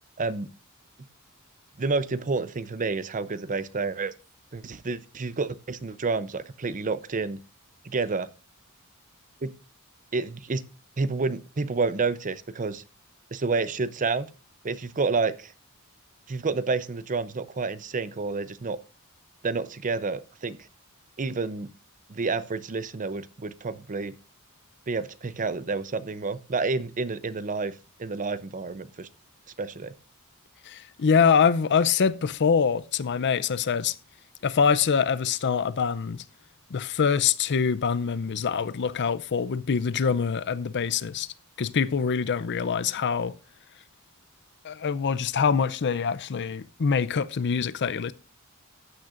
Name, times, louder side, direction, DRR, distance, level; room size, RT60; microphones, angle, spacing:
voice 1, 0.2-0.5 1.8-4.1 4.5-7.4 7.8-8.3 9.4-9.5 10.1-10.6 11.0-12.8 13.3-14.3 14.6-15.5 16.3-18.8 19.4-20.6 21.2-21.7 22.1-24.1 24.9-27.7 28.0-29.1 29.6-29.9, right 4 dB, 35° right, 0.6 m, -29 dB
voice 2, 30.7-34.0 34.4-36.2 36.7-41.3 41.6-43.3 44.6-48.1, left 6 dB, 50° left, 0.5 m, -24 dB
14.5 x 9.1 x 2.5 m
head